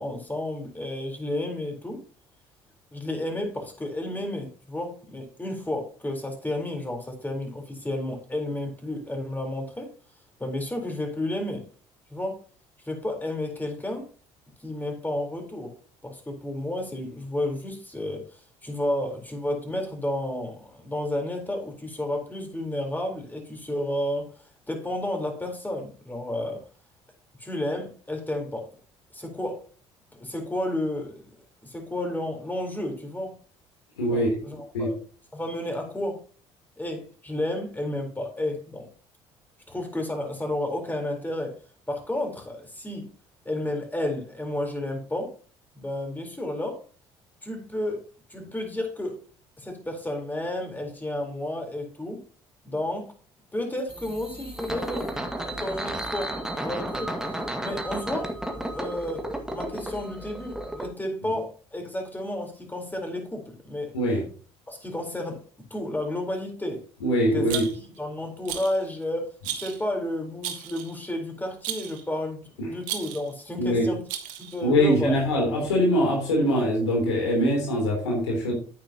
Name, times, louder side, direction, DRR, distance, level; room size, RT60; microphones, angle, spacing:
voice 1, 0.0-2.0 2.9-9.9 10.4-11.7 12.1-12.4 12.8-14.1 14.6-15.7 16.0-24.3 24.7-26.6 27.4-28.7 29.1-29.6 30.1-33.4 34.1-35.0 35.3-36.2 36.8-38.9 39.7-41.6 41.9-43.1 43.4-45.3 45.7-46.8 47.4-48.0 48.3-49.2 49.6-52.2 52.6-53.1 53.5-57.2 57.6-58.3 58.7-63.9 64.7-65.4 65.7-66.9 67.3-67.6 68.0-74.0 74.4-75.2, left 1 dB, 15° left, 4.1 m, -31 dB
voice 2, 34.0-34.3 34.7-34.9 63.9-64.2 67.0-67.6 72.6-72.7 73.6-73.9 74.6-78.5, equal, 85° left, 3.4 m, -23 dB
sound 1, 53.9-60.9, right 1 dB, 5° right, 1.9 m, -33 dB
Rattle, 67.5-68.0 68.5-68.8 69.4-69.8 70.4-71.0 71.6-72.0 72.8-73.3 74.1-74.6, right 11 dB, 70° right, 1.4 m, -34 dB
9.4 x 9.2 x 2.9 m
hypercardioid pair, 55°, 14 cm